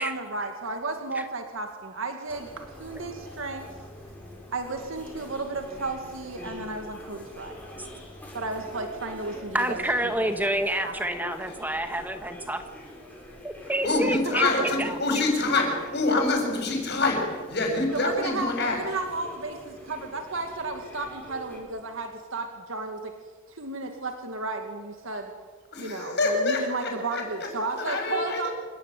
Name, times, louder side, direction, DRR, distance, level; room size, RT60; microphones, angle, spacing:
voice 1, 0.0-2.5 2.8-3.7 4.5-7.6 8.3-9.8 10.2-10.9 11.2-11.4 14.4-14.5 17.9-23.1 23.5-25.3 25.8-28.5, right 3 dB, 70° right, 4 dB, 2.2 m, -33 dB
sound 1, 2.3-21.6, left 1 dB, 10° left, 6.1 m, -44 dB
voice 2, 9.5-12.6 13.4-14.5 14.8-15.2, right 1 dB, 10° right, 7 dB, 1.8 m, -28 dB
voice 3, 13.8-18.8 25.7-27.5 27.8-28.5, left 3 dB, 50° left, 2 dB, 7.4 m, -26 dB
27.5 x 17.0 x 9.2 m, 1.5 s
head